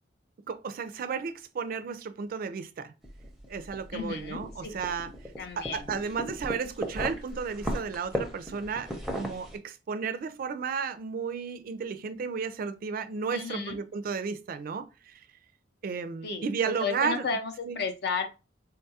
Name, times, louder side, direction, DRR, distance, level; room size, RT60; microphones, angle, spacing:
voice 1, 0.5-2.9 3.5-5.1 5.6-15.2 15.8-17.3 17.6-17.8, right 6 dB, 50° right, 0.3 m, -33 dB
sound 1, 3.0-9.6, equal, ahead, 0.5 m, -37 dB
voice 2, 3.9-4.8 5.4-5.9 13.3-13.8 16.2-18.3, left 5 dB, 60° left, 0.6 m, -33 dB
3.6 x 2.3 x 2.7 m
head